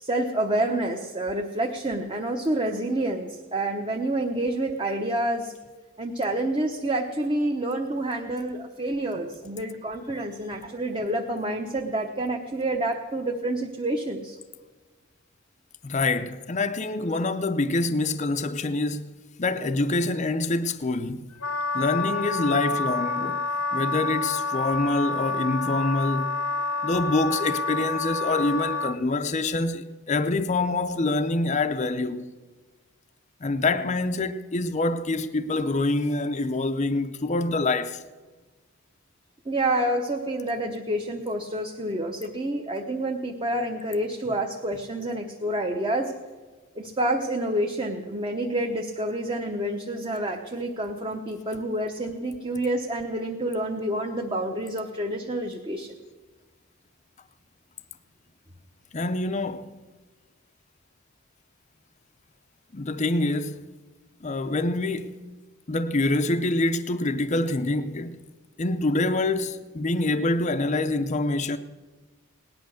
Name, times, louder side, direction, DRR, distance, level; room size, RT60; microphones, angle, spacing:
voice 1, 0.0-5.5 6.0-14.4 39.4-46.1 46.8-55.9, right 1 dB, 25° right, 0.9 m, -28 dB
voice 2, 15.8-19.1 19.4-21.3 21.7-23.4 23.7-26.3 26.8-32.3 33.4-38.0 58.9-59.7 62.7-63.7 64.2-65.2 65.7-68.2 68.6-71.6, left 2 dB, 30° left, 0.5 m, -26 dB
Wind instrument woodwind instrument, 21.4-29.0, left 3 dB, 80° left, 0.9 m, -28 dB
18.0 x 10.5 x 6.4 m
head